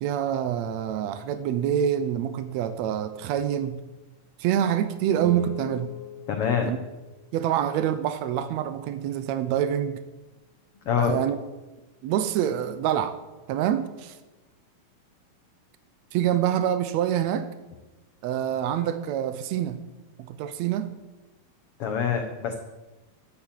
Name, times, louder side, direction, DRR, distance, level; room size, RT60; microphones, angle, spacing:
voice 1, 0.0-3.8 4.4-5.9 6.7-6.8 7.3-10.0 11.0-11.4 12.0-13.2 13.5-14.2 16.1-17.5 18.2-19.8 20.3-20.9, right 10 dB, 90° right, 1.5 m, -26 dB
sound 1, 5.1-7.3, right 1 dB, 35° right, 2.2 m, -36 dB
voice 2, 6.3-6.7 10.8-11.1 21.8-22.5, left 7 dB, 75° left, 1.3 m, -25 dB
11.5 x 8.5 x 7.4 m
omnidirectional pair, 4.0 m